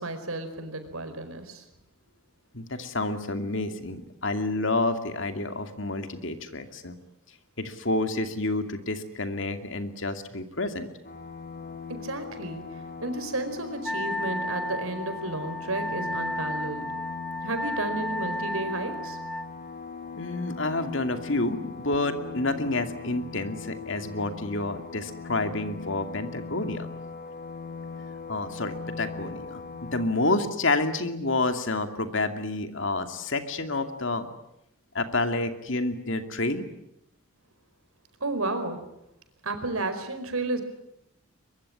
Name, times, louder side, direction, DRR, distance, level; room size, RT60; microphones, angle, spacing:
voice 1, 0.0-1.6 11.9-12.6 13.0-16.9 17.4-19.2 38.2-38.8 39.4-40.6, right 2 dB, 85° right, 8 dB, 4.8 m, -32 dB
voice 2, 2.5-7.0 7.6-10.9 20.2-26.9 28.3-34.3 34.9-36.7, left 2 dB, 60° left, 8 dB, 2.5 m, -29 dB
sound 1, 11.0-30.1, left 5 dB, 45° left, 2.3 m, -40 dB
Wind instrument woodwind instrument, 13.8-19.5, equal, ahead, 1.0 m, -33 dB
23.0 x 23.0 x 9.8 m, 0.83 s
head